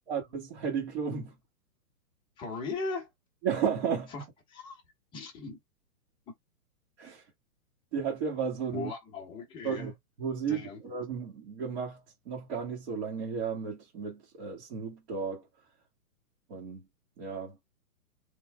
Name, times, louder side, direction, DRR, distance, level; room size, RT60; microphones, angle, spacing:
voice 1, 0.1-1.4 3.4-4.1 7.0-7.2 7.9-8.9 9.6-9.9 10.2-15.4 16.5-16.8 17.2-17.6, right 6 dB, 45° right, 2.0 m, -33 dB
voice 2, 2.4-3.1 4.1-4.8 5.1-5.6 6.3-6.4 8.7-9.9 10.5-10.8, left 3 dB, 10° left, 0.9 m, -38 dB
3.8 x 3.2 x 3.4 m
hypercardioid pair, 155°, 47 cm